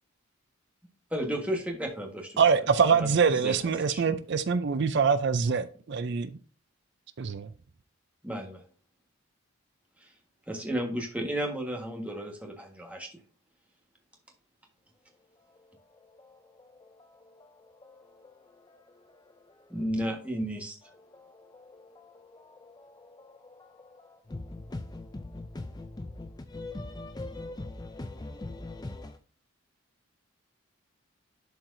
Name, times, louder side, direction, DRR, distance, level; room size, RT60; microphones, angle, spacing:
voice 1, 1.1-2.4 3.0-3.1 3.4-3.6 3.9-4.0 8.2-8.6 10.0-10.1 10.5-13.1 19.7-20.8, equal, 5° right, 1.4 m, -33 dB
voice 2, 2.4-6.4 7.2-7.5, right 6 dB, 55° right, 0.4 m, -24 dB
voice 3, 15.2-19.8 20.8-29.2, left 2 dB, 20° left, 0.4 m, -44 dB
11.5 x 4.5 x 2.6 m
head